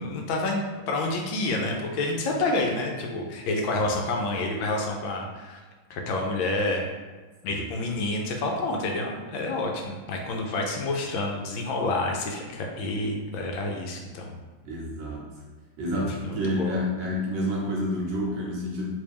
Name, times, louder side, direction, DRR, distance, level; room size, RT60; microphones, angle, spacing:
voice 1, 0.0-5.6 5.9-6.8 7.4-14.3 16.0-16.8, left 2 dB, 75° left, 1 dB, 1.3 m, -28 dB
voice 2, 14.7-15.2 15.8-18.9, equal, 70° right, -3 dB, 1.2 m, -29 dB
3.2 x 3.1 x 3.4 m, 1.3 s
omnidirectional pair, 2.2 m